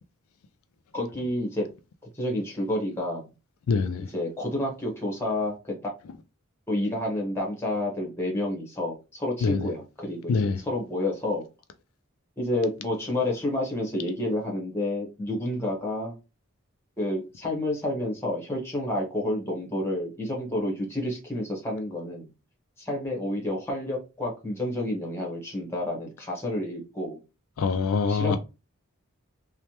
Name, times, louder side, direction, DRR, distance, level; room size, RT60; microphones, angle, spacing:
voice 1, 0.9-1.7 2.1-3.3 4.1-5.9 6.7-11.5 12.4-16.2 17.0-22.3 22.8-27.2 28.1-28.4, left 1 dB, 10° left, 1.0 m, -29 dB
voice 2, 3.7-4.1 9.4-9.7 10.3-10.6 27.6-28.4, left 5 dB, 75° left, 0.3 m, -24 dB
3.2 x 2.1 x 2.8 m
head